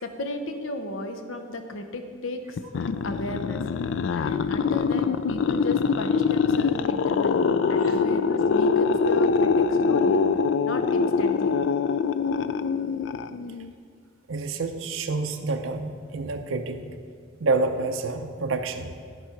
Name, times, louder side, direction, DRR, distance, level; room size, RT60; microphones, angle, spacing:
voice 1, 0.0-2.6 3.0-3.6 4.1-10.2 10.6-11.6, left 2 dB, 90° left, 6 dB, 0.8 m, -34 dB
sound 1, 2.6-13.7, left 5 dB, 70° left, 0.3 m, -24 dB
voice 2, 14.3-16.8 17.4-18.9, right 3 dB, 85° right, 6 dB, 0.6 m, -28 dB
11.0 x 5.0 x 5.8 m, 2.2 s
head